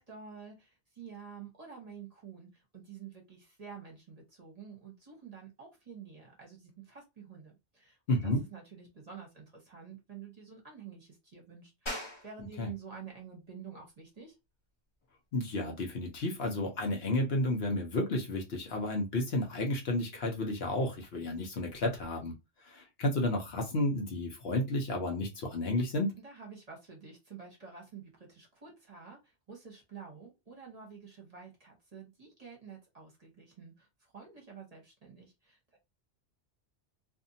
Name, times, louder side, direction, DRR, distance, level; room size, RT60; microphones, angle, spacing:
voice 1, 0.0-14.4 26.2-35.8, right 6 dB, 35° right, 0.9 m, -49 dB
voice 2, 8.1-8.4 12.6-12.7 15.3-22.3 22.6-26.2, left 1 dB, 65° left, 1.0 m, -32 dB
sound 1, 11.9-22.1, left 1 dB, 30° left, 0.8 m, -50 dB
2.6 x 2.5 x 2.6 m
omnidirectional pair, 1.2 m